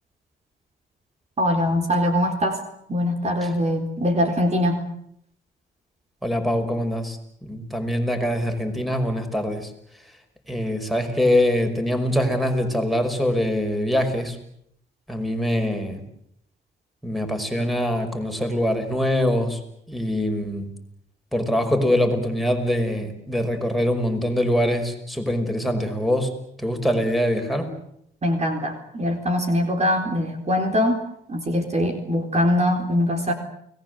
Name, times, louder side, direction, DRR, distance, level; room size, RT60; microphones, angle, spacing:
voice 1, 1.4-2.6 2.9-4.8 28.2-31.0 31.3-33.3, left 1 dB, 35° right, 5 dB, 4.1 m, -22 dB
voice 2, 6.2-9.7 10.5-14.4 15.1-16.0 17.0-19.6 19.9-20.7 21.3-26.3 26.6-27.7, left 1 dB, ahead, 6 dB, 5.5 m, -23 dB
30.0 x 19.5 x 8.0 m, 0.72 s
cardioid pair, 90°, 20 cm